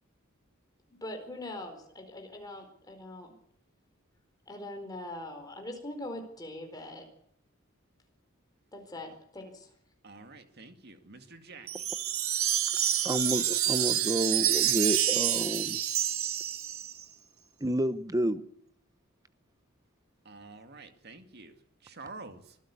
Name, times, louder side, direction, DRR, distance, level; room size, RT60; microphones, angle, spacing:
voice 1, 0.9-3.3 4.5-7.0 8.7-9.7, left 1 dB, 20° left, 4.5 m, -42 dB
voice 2, 10.0-11.9 20.2-22.6, right 3 dB, 50° right, 2.2 m, -48 dB
Wind chime, 11.7-17.0, right 11 dB, 85° right, 1.5 m, -28 dB
voice 3, 13.0-15.8 17.6-18.4, right 1 dB, 15° right, 1.0 m, -30 dB
25.0 x 15.0 x 8.5 m
head